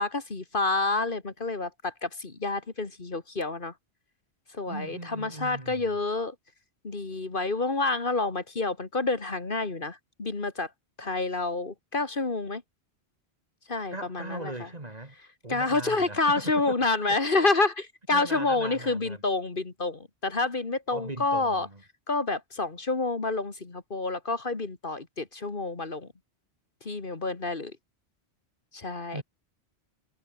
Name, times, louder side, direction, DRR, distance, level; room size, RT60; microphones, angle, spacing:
voice 1, 0.0-3.7 4.5-6.4 6.8-10.7 11.0-12.6 13.7-14.7 15.5-21.7 22.1-26.1 26.8-27.8 28.7-29.2, left 3 dB, 55° left, 2.2 m, -28 dB
voice 2, 4.7-6.0 13.9-15.1 15.4-16.8 17.1-17.2 18.1-19.2 20.9-21.8 29.1-29.2, right 2 dB, 40° right, 2.9 m, -39 dB
omnidirectional pair, 1.1 m